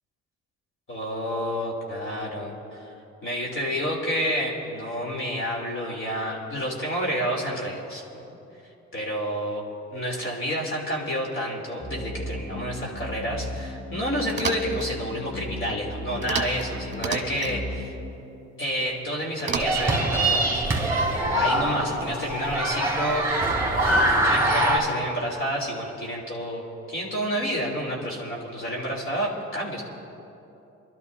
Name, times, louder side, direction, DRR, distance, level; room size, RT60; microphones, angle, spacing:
voice 1, 0.9-2.9 3.2-8.0 8.9-9.6 9.9-17.6 18.6-20.6 21.3-23.2 23.8-26.6 26.9-29.8, equal, 45° left, -1 dB, 3.3 m, -29 dB
sound 1, 11.8-18.2, left 1 dB, 25° left, 2.6 m, -36 dB
sound 2, 14.3-14.9 16.2-16.7 16.9-17.5 19.4-20.0, right 5 dB, 40° right, 1.4 m, -30 dB
sound 3, 19.5-24.8, right 1 dB, 10° right, 2.9 m, -23 dB
28.5 x 12.5 x 2.7 m, 2.8 s
cardioid pair, 90°, 30 cm